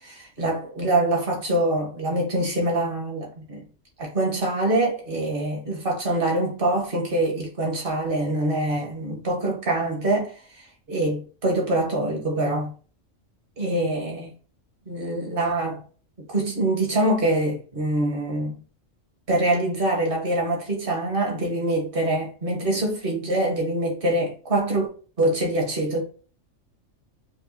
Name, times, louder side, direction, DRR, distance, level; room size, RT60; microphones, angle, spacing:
voice 1, 0.0-3.6 4.0-12.7 13.6-14.3 14.9-15.8 16.3-18.6 19.3-24.9 25.2-26.0, right 1 dB, 45° right, 1.4 m, -24 dB
5.2 x 2.3 x 2.7 m
omnidirectional pair, 1.4 m